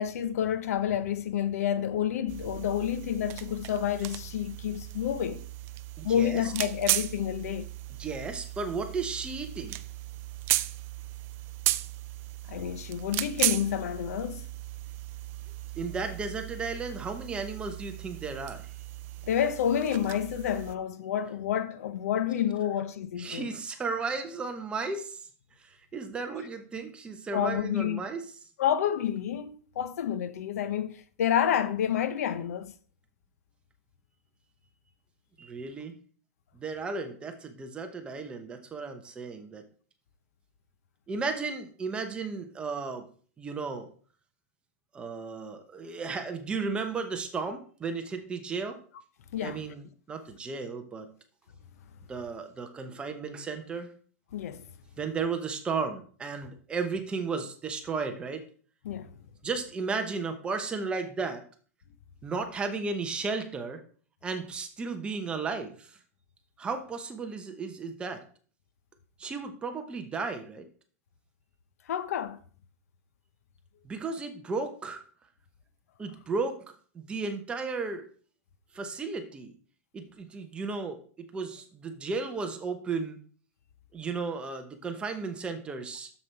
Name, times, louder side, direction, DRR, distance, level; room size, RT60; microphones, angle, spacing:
voice 1, 0.0-5.4 6.0-7.7 12.5-14.5 19.2-23.5 27.3-28.0 28.6-32.7 49.3-49.6 54.3-54.7 58.8-59.2 71.9-72.4, left 9 dB, 75° left, 0.8 m, -29 dB
sound 1, 2.3-20.8, right 16 dB, 30° right, 0.4 m, -36 dB
voice 2, 6.0-6.5 8.0-9.8 15.7-18.7 23.2-25.3 25.6-28.2 35.4-35.9 36.5-39.6 41.1-43.0 43.4-43.9 44.9-48.8 49.4-51.1 52.1-53.9 55.0-58.5 59.4-61.4 62.2-63.8 64.2-66.0 66.6-68.2 69.2-70.7 73.8-75.0 76.0-78.1 78.7-79.5 79.9-83.2 83.9-86.1, right 4 dB, 10° right, 0.9 m, -34 dB
7.0 x 6.9 x 4.6 m
supercardioid pair, 160°, 8 cm